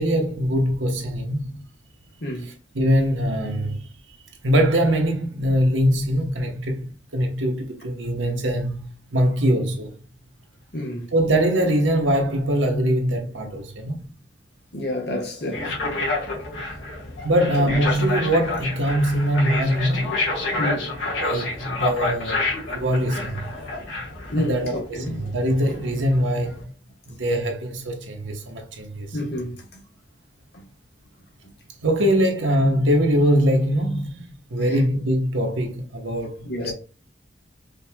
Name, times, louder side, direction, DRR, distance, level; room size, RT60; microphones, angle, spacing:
voice 1, 0.0-1.6 2.7-3.8 4.4-6.9 7.1-10.0 11.1-14.1 17.2-20.1 21.2-23.4 24.4-26.6 27.1-29.2 31.8-36.7, equal, 90° right, 1.0 m, -22 dB
voice 2, 10.7-11.1 14.7-15.7 17.3-17.8 20.5-20.9 24.3-25.2 29.1-29.8 34.7-34.8 36.4-36.7, left 1 dB, 60° left, 1.3 m, -29 dB
sound 1, 15.5-26.6, left 2 dB, 90° left, 1.7 m, -29 dB
5.1 x 2.9 x 2.3 m
head